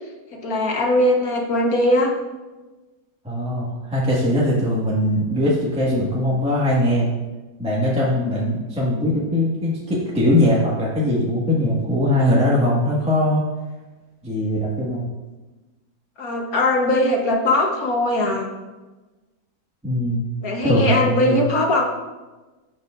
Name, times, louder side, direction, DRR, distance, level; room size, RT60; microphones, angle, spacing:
voice 1, 0.3-2.1 16.2-18.5 20.4-21.9, left 1 dB, 60° left, 0 dB, 1.6 m, -20 dB
voice 2, 3.2-7.1 7.6-13.4 14.2-15.1 19.8-20.3 20.6-21.4, left 1 dB, 5° right, -6 dB, 1.6 m, -20 dB
15.5 x 5.4 x 2.5 m, 1.2 s
omnidirectional pair, 1.8 m